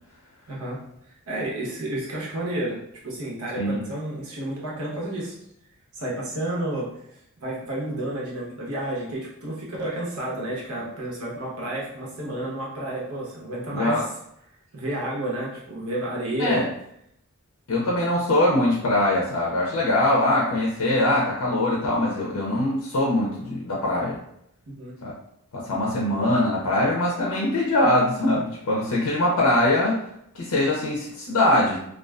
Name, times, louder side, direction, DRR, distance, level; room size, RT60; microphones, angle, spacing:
voice 1, 0.5-0.8 1.3-2.8 3.0-5.4 5.9-6.9 7.4-14.0 14.7-16.6 24.8-24.9, right 1 dB, 80° right, -4 dB, 0.8 m, -30 dB
voice 2, 13.7-14.0 16.4-16.6 17.7-24.2 25.0-25.1 25.5-30.0 30.3-31.9, left 1 dB, 85° left, -3 dB, 0.5 m, -22 dB
2.4 x 2.3 x 2.2 m, 0.74 s
head